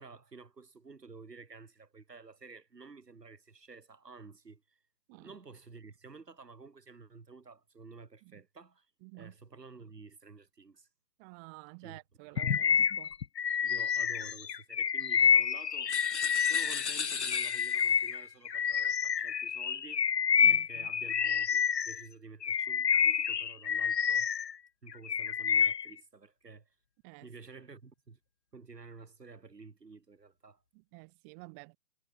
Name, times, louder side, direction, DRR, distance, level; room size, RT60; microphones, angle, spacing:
voice 1, 0.0-4.8 5.1-8.9 9.1-10.9 11.8-12.0 13.6-15.9 16.4-20.1 20.5-24.3 24.8-26.7 27.2-28.2 28.5-30.6, right 4 dB, 85° right, 6.7 m, -52 dB
voice 2, 9.0-9.3 11.2-13.1 20.4-20.9 27.0-27.6 30.7-31.8, right 36 dB, 10° right, 2.3 m, -51 dB
Bird vocalization bird call bird song, 12.4-16.9 17.3-22.0 22.4-24.5 24.9-25.9, left 7 dB, 85° left, 1.0 m, -28 dB
sound 1, 15.9-18.1, left 6 dB, 45° left, 1.1 m, -36 dB
hypercardioid pair, 170°, 47 cm